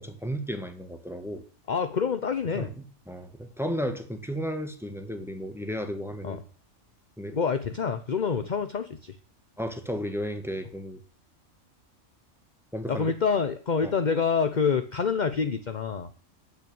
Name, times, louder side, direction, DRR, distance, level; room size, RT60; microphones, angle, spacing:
voice 1, 0.0-1.4 2.5-2.7 3.1-6.4 7.2-7.4 9.6-11.0 12.7-13.1 13.8-13.9, equal, ahead, 7 dB, 1.6 m, -33 dB
voice 2, 1.7-2.7 6.2-6.4 7.3-9.2 12.9-16.1, left 6 dB, 40° left, 10 dB, 0.9 m, -27 dB
9.6 x 9.0 x 8.7 m, 0.42 s
omnidirectional pair, 1.4 m